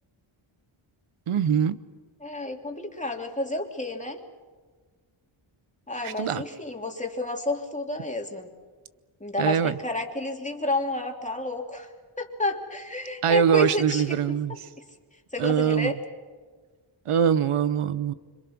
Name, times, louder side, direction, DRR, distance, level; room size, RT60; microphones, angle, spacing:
voice 1, 1.3-1.8 6.0-6.4 9.4-9.7 13.2-14.5 15.4-15.9 17.1-18.1, right 8 dB, 90° right, 14 dB, 1.0 m, -23 dB
voice 2, 2.2-4.2 5.9-8.5 9.2-11.9 12.2-14.4 15.3-16.0, left 2 dB, 15° left, 2 dB, 3.0 m, -30 dB
26.5 x 25.5 x 6.1 m, 1.4 s
wide cardioid pair, 90°, 50 cm